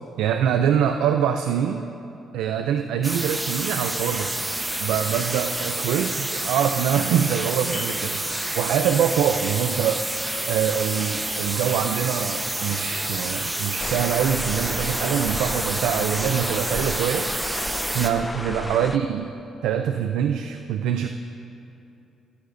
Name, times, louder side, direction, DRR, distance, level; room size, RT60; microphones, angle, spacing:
voice 1, 0.2-1.9 2.3-4.3 4.8-10.1 10.5-17.3 17.9-19.4 19.6-21.1, right 8 dB, 90° right, 7 dB, 0.4 m, -24 dB
sound 1, 3.0-18.1, right 1 dB, 15° right, 1.0 m, -29 dB
sound 2, 7.7-13.1, left 2 dB, 30° left, 2.5 m, -47 dB
sound 3, 13.8-19.0, left 2 dB, 15° left, 0.4 m, -33 dB
19.0 x 11.0 x 2.6 m, 2.8 s
cardioid pair, 90°, 0 cm